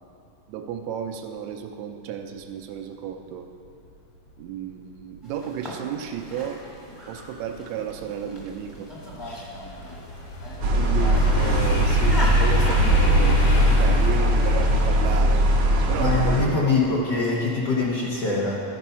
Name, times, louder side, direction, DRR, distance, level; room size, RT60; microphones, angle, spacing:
voice 1, 0.5-3.5 4.4-6.6 7.1-8.9 10.7-13.4 13.8-15.4 15.9-16.9, right 8 dB, 75° right, 5 dB, 1.8 m, -33 dB
sound 1, 5.2-15.1, equal, 15° left, 0.8 m, -37 dB
sound 2, 7.5-7.6 8.1-17.1 17.5-17.9, left 1 dB, 65° left, 1.7 m, -29 dB
sound 3, 10.6-16.5, equal, 60° right, 1.4 m, -20 dB
voice 2, 16.0-18.6, left 3 dB, 80° left, -5 dB, 0.9 m, -24 dB
13.0 x 5.3 x 5.6 m, 2.6 s
omnidirectional pair, 3.4 m